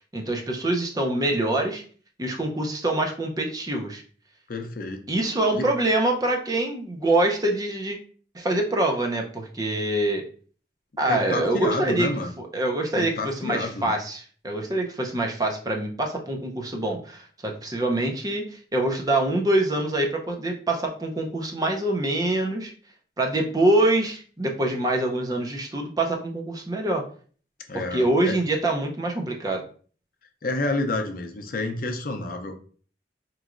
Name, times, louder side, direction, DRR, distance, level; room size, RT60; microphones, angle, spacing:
voice 1, 0.1-1.8 2.2-4.0 5.1-8.0 8.3-10.2 11.0-12.1 12.5-22.7 23.2-27.0 27.7-29.6, right 1 dB, 20° right, 2 dB, 0.6 m, -25 dB
voice 2, 4.5-5.1 5.5-5.7 11.1-12.3 12.9-13.9 27.7-28.4 30.4-32.5, left 2 dB, 50° left, 5 dB, 0.6 m, -29 dB
4.7 x 3.0 x 2.4 m, 0.43 s
head